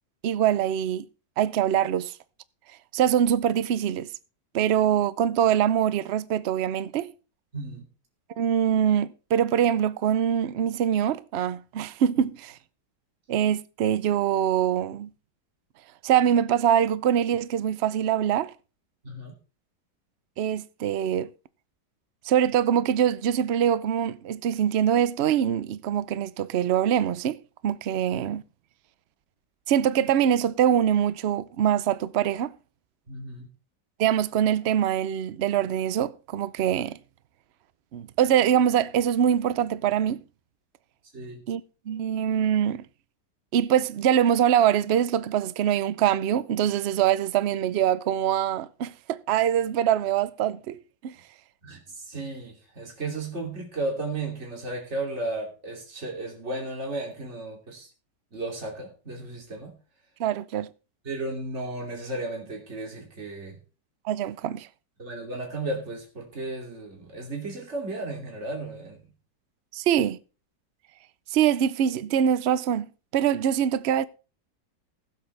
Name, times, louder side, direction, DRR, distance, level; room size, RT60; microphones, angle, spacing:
voice 1, 0.2-1.1 1.4-2.1 2.9-4.1 4.5-7.1 8.4-12.6 13.3-15.1 16.0-18.5 20.4-21.3 22.3-27.4 27.6-28.4 29.7-32.5 34.0-37.0 37.9-40.2 41.5-42.8 43.5-50.8 51.0-51.1 60.2-60.7 64.0-64.7 69.7-70.2 71.3-74.0, right 9 dB, 70° right, 0.6 m, -24 dB
voice 2, 7.5-7.8 19.0-19.3 33.1-33.5 41.1-41.4 51.6-57.9 58.3-59.7 61.0-63.6 65.0-69.0, right 2 dB, 40° right, 3.1 m, -34 dB
19.5 x 7.9 x 3.3 m
omnidirectional pair, 1.9 m